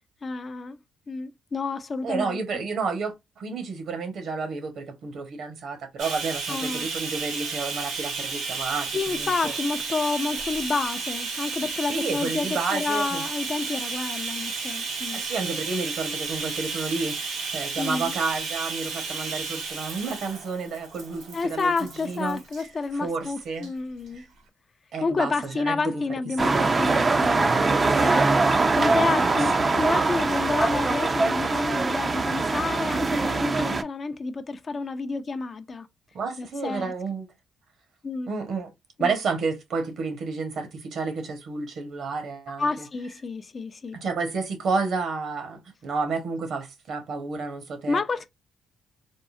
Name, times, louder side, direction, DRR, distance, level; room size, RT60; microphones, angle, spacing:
voice 1, 0.2-0.8 1.1-2.6 6.5-6.9 8.9-15.2 17.8-18.2 21.3-24.2 25.0-35.9 36.4-36.9 38.0-38.3 39.0-39.1 42.6-44.0 47.9-48.3, left 4 dB, 40° left, 0.4 m, -30 dB
voice 2, 2.0-9.5 11.9-13.2 15.1-22.4 23.0-23.7 24.1-24.3 24.9-26.0 26.5-26.7 29.2-29.8 36.1-37.3 38.3-38.7 39.0-42.6 43.9-48.0, right 4 dB, 65° right, 1.0 m, -31 dB
Bathtub (filling or washing), 6.0-22.6 23.5-23.7 24.1-24.2, right 4 dB, 90° right, 1.4 m, -32 dB
sound 1, 26.4-33.8, right 3 dB, 30° right, 0.4 m, -22 dB
3.6 x 2.0 x 2.4 m
cardioid pair, 90°, 0 cm